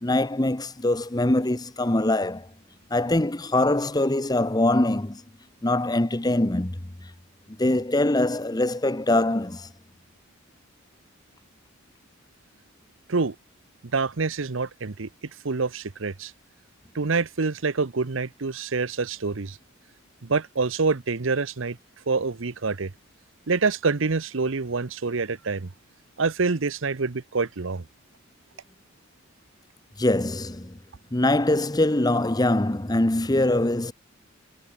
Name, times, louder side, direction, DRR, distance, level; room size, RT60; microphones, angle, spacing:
voice 1, 0.0-2.5 2.9-5.2 5.6-6.8 7.6-9.7 30.0-30.8 31.1-33.9, left 1 dB, 20° left, 0.9 m, -23 dB
voice 2, 13.9-15.1 15.4-16.3 16.9-19.6 20.2-21.8 22.1-22.9 23.5-25.7 26.2-27.8, right 4 dB, 70° right, 0.9 m, -26 dB
head